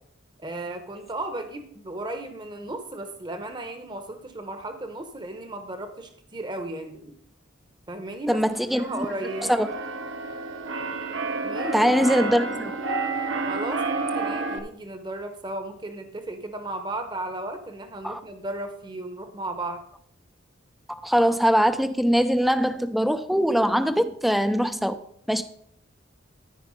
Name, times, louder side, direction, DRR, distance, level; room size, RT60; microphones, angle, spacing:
voice 1, 0.4-7.1 7.9-8.5 8.7-9.6 11.4-11.8 13.5-19.8, right 2 dB, 25° right, 7 dB, 0.8 m, -35 dB
voice 2, 8.3-9.1 9.5-9.7 11.7-12.8 18.0-18.2 20.9-25.0 25.3-25.4, equal, ahead, 10 dB, 0.3 m, -22 dB
Keyboard (musical), 8.7-14.6, right 3 dB, 65° right, 0.9 m, -30 dB
13.0 x 4.7 x 4.9 m, 0.68 s
head